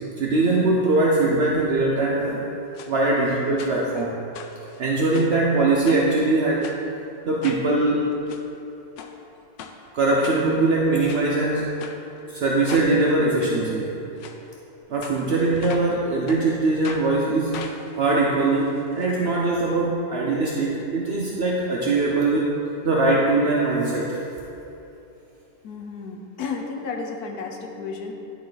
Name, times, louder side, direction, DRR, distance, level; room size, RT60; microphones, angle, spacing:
voice 1, 0.2-2.4 2.9-4.2 4.8-6.7 7.3-8.1 9.9-11.8 12.3-14.0 14.9-17.5 18.0-22.5 22.8-24.2, right 2 dB, 65° right, -3 dB, 0.6 m, -21 dB
sound 1, 2.8-2.9 3.6-4.0 4.3-5.4 5.9-6.2 6.6-6.8 7.4-7.7 8.1-8.4 9.0-9.1 9.6-9.8 10.2-10.7 11.1-11.3 11.8-12.0 12.7-12.9 13.4-13.5 14.2-14.4 15.0-16.0 16.3-16.4 16.8-17.1 17.5-19.1 19.4-19.5 19.7-19.8, left 7 dB, 85° left, 1.3 m, -39 dB
voice 2, 25.6-28.1, left 4 dB, 70° left, 2 dB, 1.1 m, -32 dB
11.0 x 4.1 x 3.9 m, 2.9 s
omnidirectional pair, 1.9 m